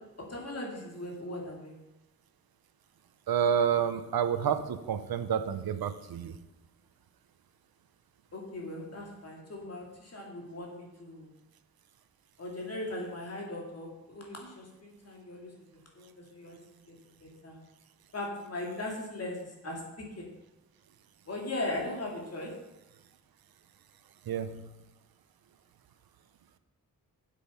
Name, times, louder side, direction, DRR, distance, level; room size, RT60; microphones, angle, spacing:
voice 1, 0.2-1.7 8.3-11.3 12.4-16.9 17.2-17.6 18.1-20.3 21.3-22.5, left 2 dB, 45° left, 0 dB, 2.5 m, -39 dB
voice 2, 3.3-6.4 24.3-24.7, right 8 dB, 85° right, 10 dB, 0.8 m, -29 dB
8.4 x 7.4 x 5.7 m, 0.99 s
wide cardioid pair, 140°, 35 cm